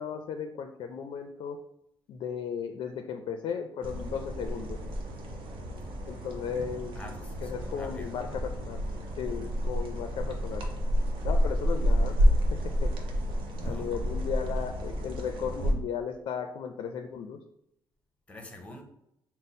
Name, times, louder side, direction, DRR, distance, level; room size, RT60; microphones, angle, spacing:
voice 1, 0.0-1.6 2.1-4.8 6.1-7.0 7.4-8.8 9.2-10.6 11.2-12.2 12.5-12.9 13.6-17.4, left 7 dB, 65° left, 0.4 m, -35 dB
sound 1, 3.8-15.7, equal, 80° right, 0.8 m, -29 dB
voice 2, 6.9-8.2 13.5-13.9 18.3-18.8, left 1 dB, 15° left, 0.6 m, -46 dB
4.9 x 2.0 x 4.1 m
cardioid pair, 160°, 9 cm